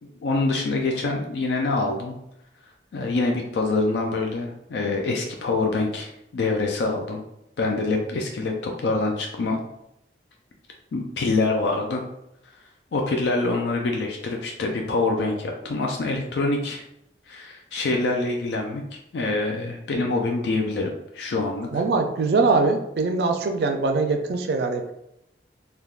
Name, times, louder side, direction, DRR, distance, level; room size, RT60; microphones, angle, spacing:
voice 1, 0.0-2.2 2.9-7.2 7.6-9.6 10.9-12.0 12.9-16.8 17.3-18.8 19.1-21.7, left 3 dB, 75° left, 1 dB, 0.4 m, -25 dB
voice 2, 21.7-24.9, right 3 dB, 65° right, 5 dB, 0.3 m, -22 dB
3.3 x 2.2 x 2.3 m, 0.81 s
head